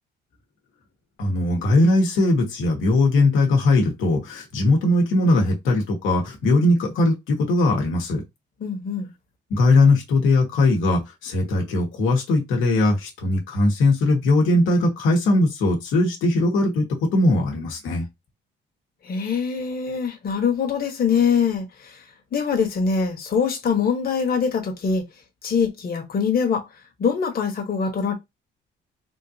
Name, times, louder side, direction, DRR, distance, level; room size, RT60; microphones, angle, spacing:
voice 1, 1.2-8.2 9.5-16.8 17.1-18.1, left 2 dB, 90° left, 1.2 m, -20 dB
voice 2, 8.6-9.1 19.0-25.0 25.4-26.7 27.0-28.1, left 6 dB, 50° left, 1.2 m, -23 dB
3.6 x 2.5 x 2.7 m
cardioid pair, 90°, 20 cm